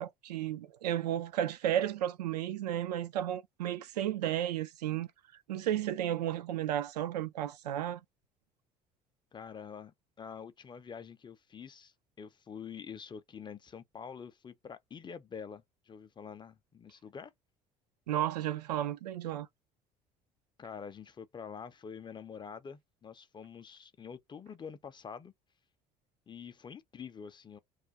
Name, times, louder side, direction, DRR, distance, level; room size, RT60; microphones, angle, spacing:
voice 1, 0.0-5.1 5.5-8.0 18.1-19.5, right 11 dB, 75° right, 0.4 m, -33 dB
voice 2, 9.3-17.3 20.6-25.3 26.3-27.6, left 6 dB, 20° left, 0.5 m, -46 dB
2.4 x 2.2 x 3.9 m
figure-of-eight pair, 60°, 21 cm